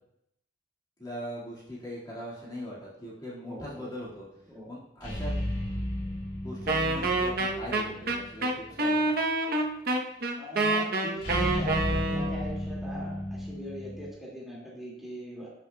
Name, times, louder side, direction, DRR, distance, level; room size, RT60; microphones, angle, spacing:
voice 1, 1.0-4.2 4.7-5.3 6.4-9.1, equal, 20° left, -7 dB, 1.9 m, -40 dB
voice 2, 3.5-3.9 4.5-4.7 5.1-5.2 10.4-15.5, equal, ahead, -5 dB, 2.1 m, -41 dB
sound 1, 5.0-8.3 8.6-8.7 11.2-14.1, left 1 dB, 80° left, 2.5 m, -33 dB
Wind instrument woodwind instrument, 6.7-12.5, right 2 dB, 55° right, 0.9 m, -27 dB
11.5 x 6.9 x 2.3 m, 0.81 s
head